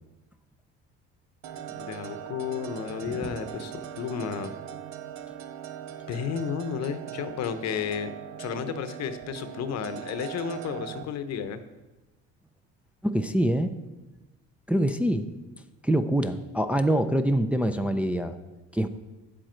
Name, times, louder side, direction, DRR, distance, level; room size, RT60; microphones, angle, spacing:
sound 1, 1.4-11.0, right 10 dB, 65° right, 0.7 m, -40 dB
voice 1, 1.7-4.5 6.1-8.1 8.4-11.6, left 7 dB, 60° left, 11 dB, 0.9 m, -32 dB
voice 2, 13.0-13.7 14.7-15.3 15.8-18.4 18.7-18.9, right 1 dB, 5° right, 7 dB, 0.5 m, -25 dB
8.7 x 7.7 x 4.4 m, 1.1 s
supercardioid pair, 90°, 30 cm